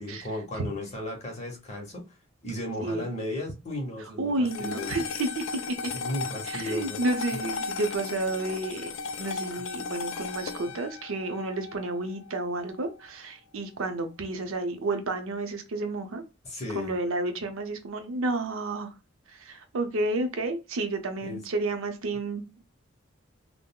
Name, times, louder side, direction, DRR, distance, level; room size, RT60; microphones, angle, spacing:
voice 1, 0.0-2.0 2.4-5.0 5.9-7.0 16.4-16.9 21.2-21.4, left 1 dB, 30° left, 1 dB, 0.8 m, -35 dB
voice 2, 4.2-5.8 6.5-8.9 9.2-16.2 16.7-18.9 19.3-22.6, right 2 dB, 80° right, 6 dB, 0.6 m, -31 dB
sound 1, 4.5-13.0, left 5 dB, 70° left, 0.3 m, -36 dB
3.6 x 2.0 x 2.2 m, 0.27 s
head